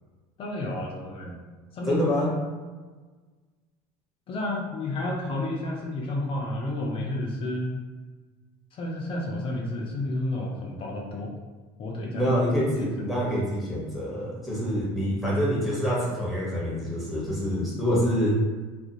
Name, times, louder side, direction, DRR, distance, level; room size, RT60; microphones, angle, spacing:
voice 1, 0.4-1.4 1.7-2.4 4.3-7.8 8.7-11.3 11.8-12.3 12.8-12.9, left 1 dB, 40° left, -1 dB, 0.5 m, -31 dB
voice 2, 1.9-2.3 12.1-18.3, equal, ahead, -6 dB, 1.0 m, -26 dB
2.4 x 2.1 x 2.8 m, 1.3 s
supercardioid pair, 100°, 14 cm